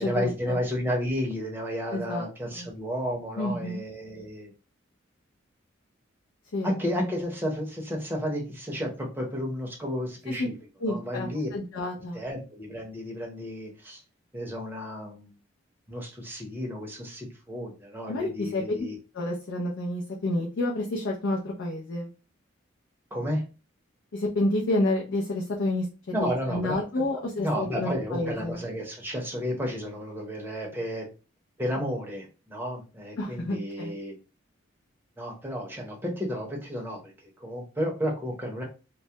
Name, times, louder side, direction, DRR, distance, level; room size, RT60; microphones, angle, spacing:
voice 1, 0.0-4.5 6.6-11.5 12.1-14.0 14.3-15.3 15.9-19.0 23.1-23.4 26.1-27.0 27.4-31.1 31.6-34.1 35.2-38.6, equal, 10° right, -1 dB, 0.6 m, -32 dB
voice 2, 1.9-2.3 2.5-2.7 3.4-3.8 6.5-6.7 10.4-10.5 10.8-12.2 18.1-18.6 19.1-22.1 24.1-28.6 33.2-33.9, left 1 dB, 75° left, -1 dB, 0.4 m, -29 dB
2.2 x 2.1 x 2.7 m, 0.32 s
head